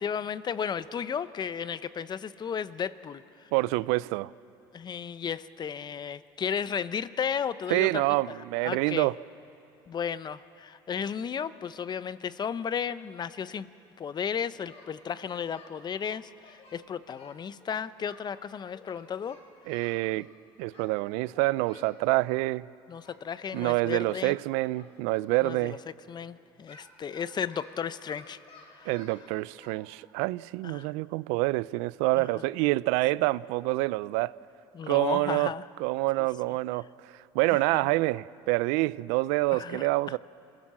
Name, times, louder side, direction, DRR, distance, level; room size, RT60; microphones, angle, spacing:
voice 1, 0.0-3.5 4.7-8.0 8.6-9.1 9.9-13.7 14.0-19.4 19.8-19.9 22.9-24.4 25.4-25.8 26.1-28.9 30.6-30.9 32.2-32.3 34.7-35.6 37.5-37.9 39.5-40.2, left 7 dB, 35° left, 15 dB, 0.8 m, -34 dB
voice 2, 3.5-4.3 7.7-9.1 19.7-20.3 20.6-22.7 23.5-25.8 28.9-34.3 34.9-35.5 35.8-40.2, right 21 dB, 80° right, 20 dB, 0.4 m, -27 dB
Singing, 14.7-15.7 16.1-18.2 18.7-20.0 20.7-20.9 21.2-21.9 23.0-23.2 23.5-25.7 26.7-29.2 29.5-29.7, left 3 dB, 60° left, 7.5 m, -54 dB
26.5 x 15.5 x 7.6 m, 2.8 s
supercardioid pair, 85°, 12 cm